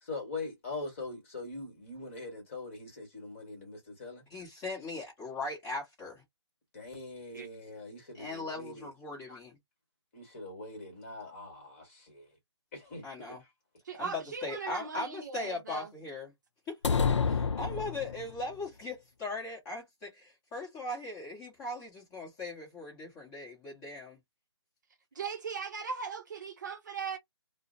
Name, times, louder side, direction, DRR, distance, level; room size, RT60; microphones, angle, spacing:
voice 1, 0.0-4.2 6.7-8.9 9.3-9.4 10.1-12.3 12.7-13.4, left 3 dB, 30° left, 1.3 m, -42 dB
voice 2, 4.3-6.2 8.1-9.6 13.0-13.4 14.0-16.3 16.7-16.8 17.3-24.2, left 2 dB, 15° left, 1.0 m, -39 dB
voice 3, 13.9-15.9 25.2-27.2, right 5 dB, 40° right, 0.6 m, -38 dB
sound 1, 16.8-18.4, left 5 dB, 85° left, 0.4 m, -29 dB
2.3 x 2.0 x 2.5 m
hypercardioid pair, 165°, 15 cm